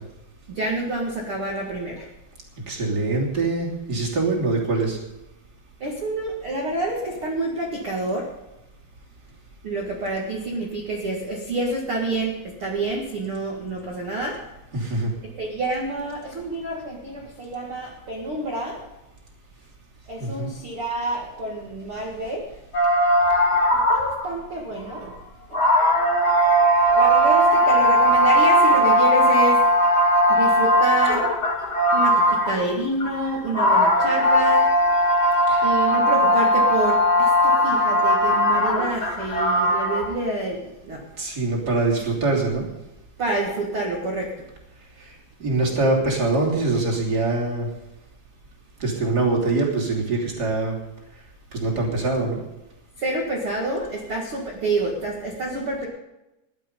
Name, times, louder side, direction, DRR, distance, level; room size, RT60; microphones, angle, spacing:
voice 1, 0.5-2.1 5.8-8.3 9.6-14.4 15.4-18.9 20.1-22.5 23.7-25.2 25.5-25.7 26.9-29.6 30.3-31.3 31.9-34.7 35.6-41.0 43.2-44.3 53.0-55.9, right 2 dB, 70° right, -2 dB, 1.2 m, -28 dB
voice 2, 2.7-5.0 14.7-15.1 20.2-20.5 35.5-35.7 41.2-42.7 45.4-47.7 48.8-50.8 51.5-52.4, right 3 dB, 25° right, -2 dB, 2.4 m, -23 dB
sound 1, 22.7-24.3 24.9-25.0 25.5-32.7 33.0-40.0, equal, 30° left, 3.0 m, -18 dB
17.0 x 11.5 x 5.4 m, 0.95 s
omnidirectional pair, 5.9 m